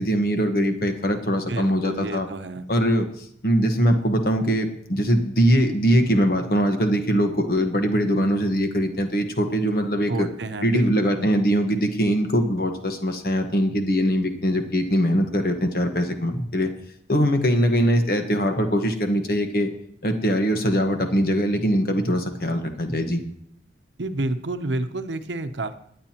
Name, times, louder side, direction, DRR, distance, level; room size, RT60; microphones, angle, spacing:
voice 1, 0.0-2.3 2.7-3.1 3.4-10.3 10.6-16.7 17.1-19.7 20.0-23.2, equal, 55° left, 5 dB, 1.3 m, -22 dB
voice 2, 1.5-2.6 10.1-11.3 24.0-25.7, right 2 dB, 85° right, 10 dB, 0.8 m, -29 dB
21.0 x 9.2 x 3.0 m, 0.67 s
head